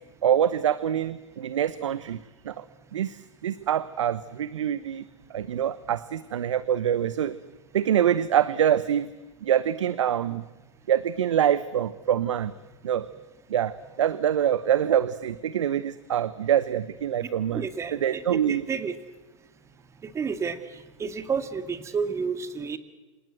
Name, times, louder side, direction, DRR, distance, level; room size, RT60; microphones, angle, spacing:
voice 1, 0.2-2.2 2.4-2.6 2.9-5.0 5.3-7.4 7.7-9.1 9.4-10.4 10.9-12.5 12.8-13.1 13.5-17.6 17.9-18.7, right 10 dB, 70° right, 15 dB, 1.0 m, -25 dB
voice 2, 17.5-18.9 20.0-20.6 21.0-22.8, right 5 dB, 15° right, 10 dB, 2.0 m, -30 dB
27.5 x 27.0 x 7.8 m, 1.1 s
hypercardioid pair, 115°, 16 cm